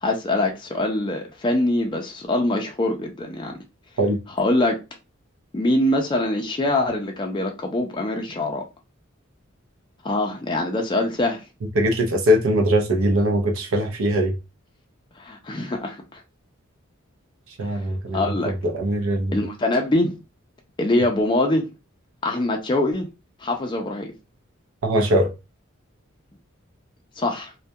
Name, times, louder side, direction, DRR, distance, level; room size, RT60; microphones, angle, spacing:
voice 1, 0.0-3.6 4.4-4.8 5.5-8.6 10.0-11.5 15.2-16.2 17.6-17.7 18.1-18.5 19.3-20.1 20.8-21.7 22.2-23.1 23.4-24.1 27.2-27.5, left 1 dB, 20° left, 0.4 m, -23 dB
voice 2, 11.7-14.4 17.6-19.4 24.8-25.3, equal, 80° right, 0.6 m, -21 dB
2.2 x 2.2 x 2.6 m
head